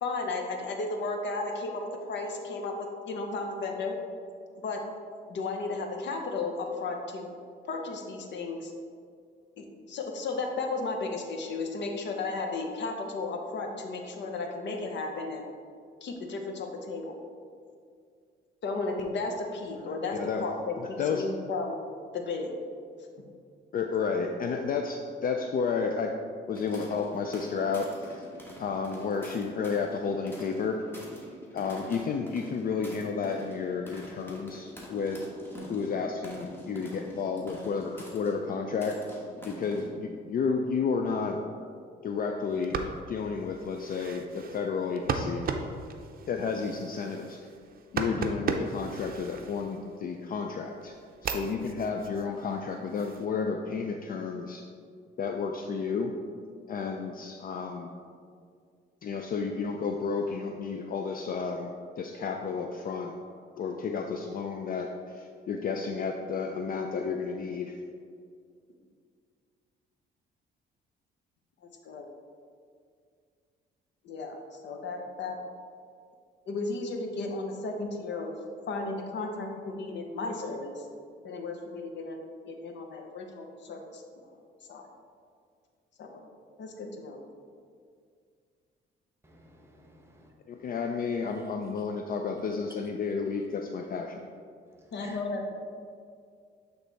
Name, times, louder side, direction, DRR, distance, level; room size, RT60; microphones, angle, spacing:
voice 1, 0.0-4.0 4.6-4.8 5.3-7.3 7.6-8.7 9.6-15.4 16.0-17.1 18.6-21.7 22.1-22.5 71.8-72.0 74.0-74.4 74.6-75.4 76.5-78.3 78.7-80.9 81.2-82.2 82.5-84.0 84.7-84.8 86.0-86.2 86.6-87.2 94.9-95.5, left 3 dB, 65° left, 3 dB, 0.8 m, -34 dB
voice 2, 19.8-20.5 20.8-21.2 23.7-26.2 26.5-28.2 28.6-30.8 31.5-35.3 35.6-39.0 39.5-41.4 42.0-42.8 43.1-45.5 46.3-47.5 47.9-51.0 51.2-54.6 55.2-56.1 56.7-57.9 59.0-63.1 63.6-67.8 90.5-94.3, left 5 dB, 45° left, 4 dB, 0.4 m, -32 dB
sound 1, 26.5-39.9, equal, 10° left, 1.4 m, -46 dB
sound 2, 42.5-50.1 50.6-53.3, right 5 dB, 50° right, 0.5 m, -37 dB
voice 3, 89.2-90.3 95.0-95.2, equal, 10° right, 1 dB, 1.0 m, -54 dB
8.0 x 3.3 x 4.0 m, 2.2 s
cardioid pair, 90°, 20 cm